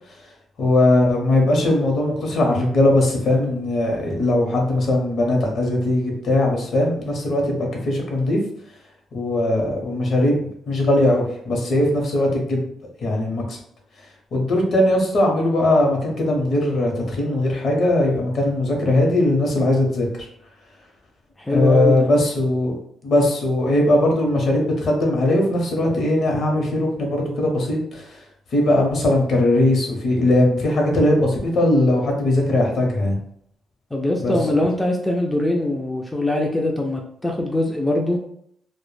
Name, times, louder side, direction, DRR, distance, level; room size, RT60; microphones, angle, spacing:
voice 1, 0.6-8.4 9.1-12.7 13.0-13.6 14.3-20.3 21.5-22.8 23.0-28.2 28.5-33.2 34.2-34.3, left 1 dB, 60° left, 0 dB, 0.7 m, -19 dB
voice 2, 21.4-22.1 33.9-38.2, left 1 dB, 10° left, 0 dB, 0.3 m, -22 dB
2.1 x 2.1 x 3.1 m, 0.68 s
cardioid pair, 110°, 0 cm